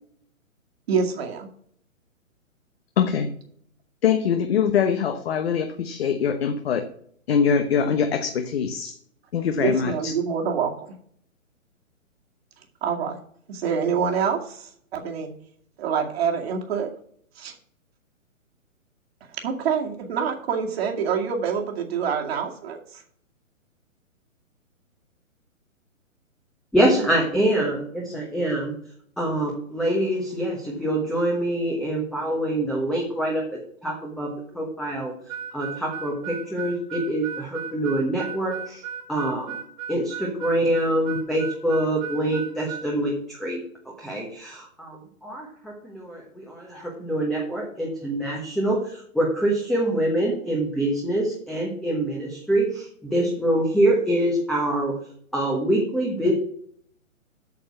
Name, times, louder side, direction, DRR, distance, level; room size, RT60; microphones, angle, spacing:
voice 1, 0.9-1.5 9.6-10.9 12.8-13.2 13.5-15.3 15.8-16.9 17.4-17.5 19.4-23.0, right 6 dB, 45° right, 2 dB, 2.2 m, -26 dB
voice 2, 3.0-3.3 4.0-6.8 7.3-9.0 9.3-10.1, left 7 dB, 50° left, 7 dB, 1.1 m, -23 dB
voice 3, 26.7-28.7 29.2-35.1 35.5-38.8 39.1-39.6 39.9-43.6 44.0-55.0 55.3-56.3, right 1 dB, ahead, -2 dB, 1.1 m, -25 dB
Harmonica, 35.3-42.9, right 8 dB, 30° right, 1.3 m, -36 dB
8.6 x 6.5 x 6.1 m, 0.62 s
hypercardioid pair, 140°, 41 cm